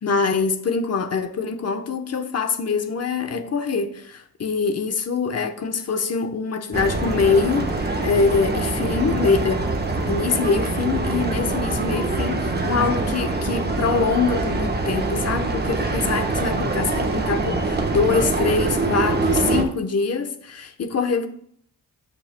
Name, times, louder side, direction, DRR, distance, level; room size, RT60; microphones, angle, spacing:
voice 1, 0.0-9.7 10.1-21.3, left 5 dB, 45° left, 1.0 m, -24 dB
sound 1, 6.7-19.6, right 3 dB, 25° right, 1.2 m, -24 dB
14.5 x 5.4 x 2.2 m
cardioid pair, 100°, 36 cm